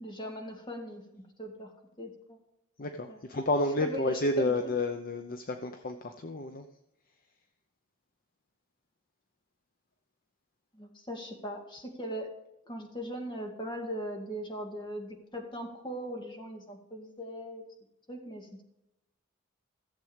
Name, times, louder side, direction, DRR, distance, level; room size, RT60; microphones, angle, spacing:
voice 1, 0.0-2.4 3.1-3.2 3.8-4.7 10.7-12.3 12.7-17.6 18.1-18.6, equal, 20° left, 2 dB, 2.1 m, -40 dB
voice 2, 2.8-6.7, left 2 dB, 40° left, 6 dB, 0.7 m, -30 dB
15.0 x 7.6 x 5.1 m, 0.88 s
head